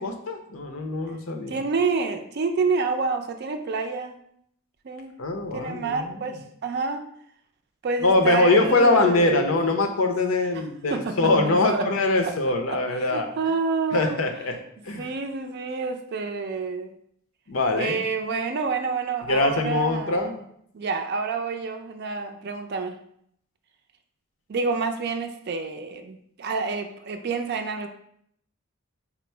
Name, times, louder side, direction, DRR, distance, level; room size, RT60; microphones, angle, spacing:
voice 1, 0.0-1.6 5.2-6.3 8.0-13.3 13.9-14.6 14.8-15.1 17.5-18.0 19.3-20.3, left 2 dB, 80° left, 4 dB, 0.6 m, -23 dB
voice 2, 1.5-4.2 4.8-5.1 5.5-7.0 7.8-9.6 10.9-11.9 12.2-12.3 12.7-12.8 13.1-14.2 15.0-16.9 17.8-20.4 20.7-23.0 24.5-27.9, right 4 dB, 50° right, 6 dB, 0.4 m, -28 dB
4.2 x 2.0 x 4.3 m, 0.69 s
head